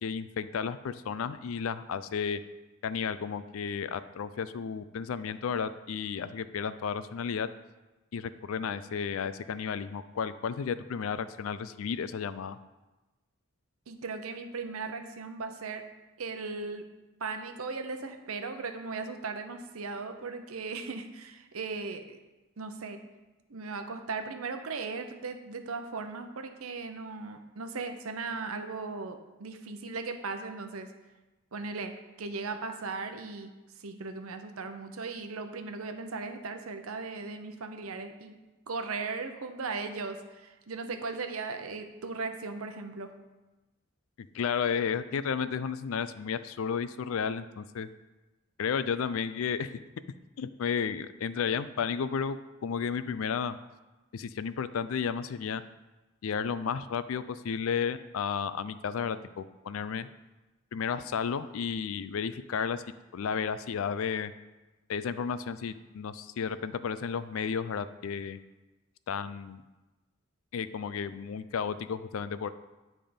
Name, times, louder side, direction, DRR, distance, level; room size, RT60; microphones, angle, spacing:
voice 1, 0.0-2.4 2.8-7.5 8.1-12.6 44.2-47.9 48.6-49.8 50.4-52.4 52.6-53.6 54.1-55.6 56.2-60.1 60.7-62.8 63.1-64.3 64.9-68.4 69.1-69.6 70.5-72.5, left 6 dB, 75° left, 14 dB, 0.4 m, -33 dB
voice 2, 13.9-15.8 16.2-16.8 17.2-22.2 22.6-23.0 23.5-30.9 31.5-33.5 33.8-38.4 38.7-43.1, right 4 dB, 85° right, 7 dB, 0.7 m, -37 dB
10.0 x 3.6 x 5.1 m, 1.1 s
head